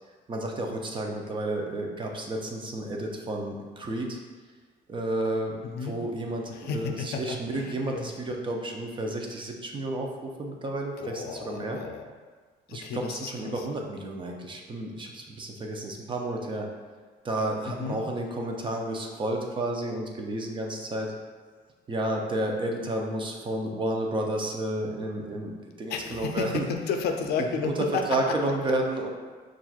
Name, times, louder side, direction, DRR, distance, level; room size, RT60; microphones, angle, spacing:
voice 1, 0.3-4.2 4.9-11.8 12.7-16.7 17.2-21.1 21.9-26.7 27.6-27.7 28.1-29.1, right 1 dB, 30° right, 1 dB, 0.5 m, -31 dB
voice 2, 5.6-6.0 6.5-8.1 11.0-12.0 12.7-13.6 17.7-18.0 25.9-26.5 26.9-28.0, left 5 dB, 70° left, 4 dB, 0.4 m, -32 dB
5.7 x 2.4 x 2.3 m, 1.5 s
cardioid pair, 110°, 17 cm